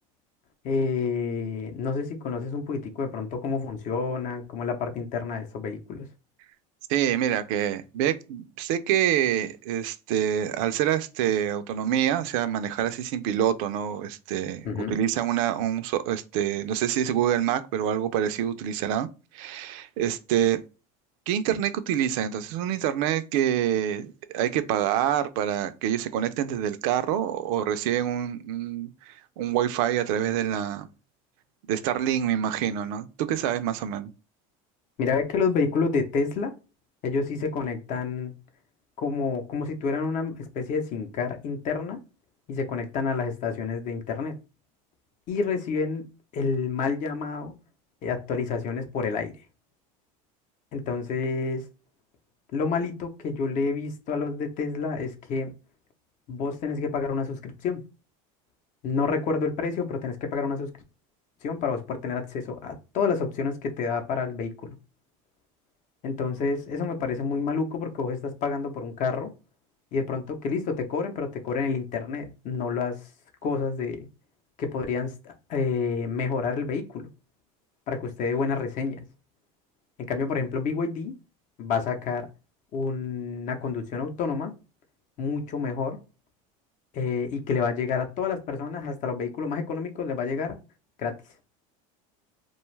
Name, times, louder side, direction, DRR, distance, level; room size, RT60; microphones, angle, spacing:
voice 1, 0.6-6.1 14.6-15.0 35.0-36.5 37.0-38.3 39.0-42.0 42.5-44.4 45.3-46.1 46.3-47.5 48.0-49.3 50.7-51.7 52.5-55.5 56.3-57.8 58.8-60.7 61.4-64.7 66.0-69.3 69.9-73.0 73.4-74.1 74.6-77.1 77.9-79.0 80.1-81.1 81.6-82.3 82.7-84.5 85.2-86.0 86.9-90.6 91.0-91.2, left 5 dB, 45° left, 0.6 m, -29 dB
voice 2, 6.9-19.1 19.3-20.6 21.3-30.9 31.7-34.1, right 10 dB, 75° right, 0.4 m, -26 dB
2.5 x 2.3 x 3.1 m
supercardioid pair, 130°, 18 cm